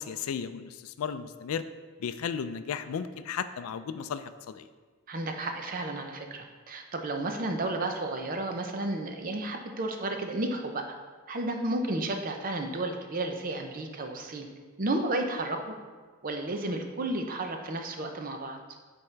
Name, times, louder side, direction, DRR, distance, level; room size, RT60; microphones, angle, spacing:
voice 1, 0.0-1.6 2.0-4.7, left 7 dB, 85° left, 12 dB, 0.4 m, -35 dB
voice 2, 5.1-10.8 11.3-14.5 14.8-15.6 16.2-18.6, right 2 dB, 40° right, 4 dB, 0.6 m, -32 dB
8.3 x 4.3 x 3.3 m, 1.4 s
head